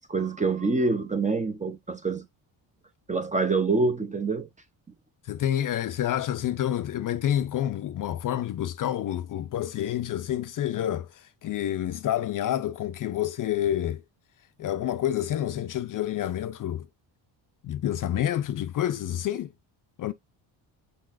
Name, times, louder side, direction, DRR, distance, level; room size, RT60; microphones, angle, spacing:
voice 1, 0.1-2.2 3.1-4.5, right 3 dB, 15° right, 0.6 m, -26 dB
voice 2, 5.3-14.0 14.6-16.9 17.6-19.5 20.0-20.1, left 11 dB, 45° left, 0.5 m, -28 dB
5.5 x 3.8 x 2.4 m
cardioid pair, 130°, 45 cm